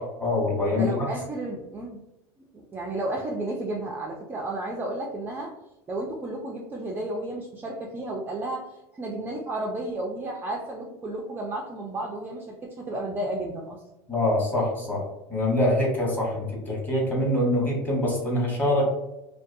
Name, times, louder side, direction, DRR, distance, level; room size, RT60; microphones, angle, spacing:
voice 1, 0.0-1.0 14.1-18.9, left 1 dB, 15° left, -4 dB, 1.1 m, -25 dB
voice 2, 0.7-2.0 2.5-5.5 5.9-8.7 8.9-13.8, right 2 dB, 15° right, -1 dB, 0.3 m, -32 dB
2.4 x 2.2 x 2.6 m, 0.93 s
supercardioid pair, 120°, 13 cm